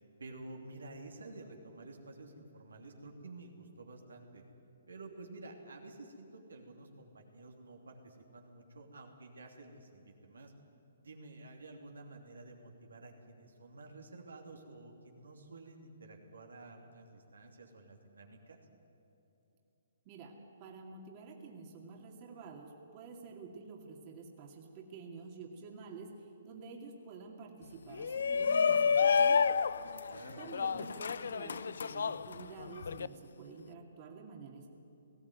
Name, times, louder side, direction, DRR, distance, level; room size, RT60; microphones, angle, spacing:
voice 1, 0.2-4.4 4.9-10.5 11.0-18.6 29.9-30.4, right 2 dB, 80° right, 2 dB, 2.9 m, -51 dB
voice 2, 20.0-29.4 30.4-34.7, right 4 dB, 35° right, 1 dB, 2.4 m, -49 dB
Shout, 27.9-33.1, left 6 dB, 70° left, 0.5 m, -30 dB
19.0 x 15.5 x 9.5 m, 3.0 s
hypercardioid pair, 135°, 0 cm